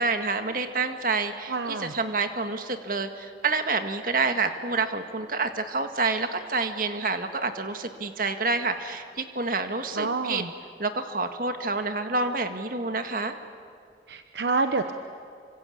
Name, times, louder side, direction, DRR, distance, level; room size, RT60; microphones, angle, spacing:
voice 1, 0.0-10.4 10.8-13.4, right 3 dB, 50° right, 7 dB, 1.8 m, -28 dB
voice 2, 1.5-1.9 10.0-10.5 14.1-14.9, right 3 dB, 70° right, 8 dB, 1.0 m, -27 dB
26.5 x 25.0 x 8.6 m, 2.4 s
head